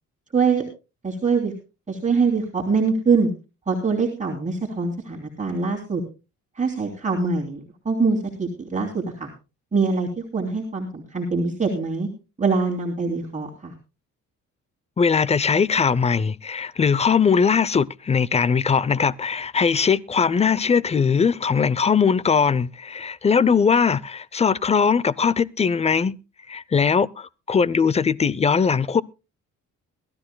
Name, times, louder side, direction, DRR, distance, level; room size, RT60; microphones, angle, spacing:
voice 1, 0.3-0.6 1.0-1.5 1.9-3.3 3.7-6.0 6.6-7.6 7.8-9.3 9.7-12.1 12.4-13.7, right 4 dB, 25° right, 3.1 m, -23 dB
voice 2, 15.0-26.1 26.5-29.0, left 6 dB, 20° left, 0.5 m, -20 dB
22.0 x 13.0 x 2.2 m
cardioid pair, 90°, 30 cm